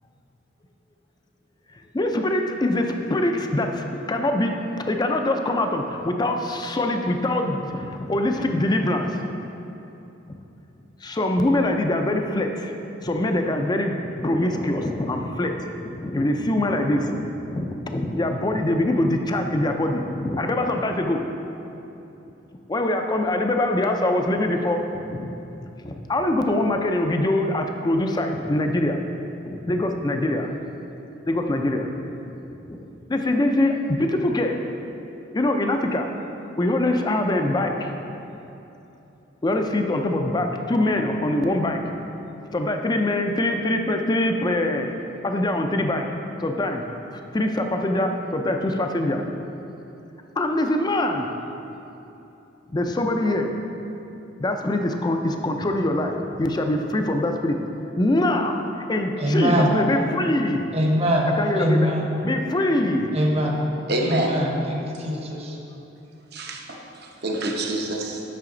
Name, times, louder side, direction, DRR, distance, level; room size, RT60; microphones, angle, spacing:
voice 1, 1.9-9.1 11.0-12.7 13.0-21.2 22.7-24.8 25.1-25.3 25.8-29.0 29.4-30.5 31.3-31.9 32.7-32.8 33.1-34.6 35.3-36.1 36.6-37.7 39.4-41.8 42.5-44.9 45.2-46.1 46.4-46.8 47.3-49.2 50.4-51.3 52.7-53.5 54.4-57.5 58.0-58.6 58.9-60.7 61.4-61.9 62.2-63.1, left 1 dB, 20° left, 4 dB, 0.5 m, -23 dB
voice 2, 59.2-59.8 60.7-62.0 63.1-63.6 64.0-65.6, equal, 35° right, 0 dB, 0.9 m, -23 dB
voice 3, 63.9-64.3 66.3-68.2, right 1 dB, 55° right, 1 dB, 0.9 m, -27 dB
9.0 x 5.7 x 3.8 m, 3.0 s
head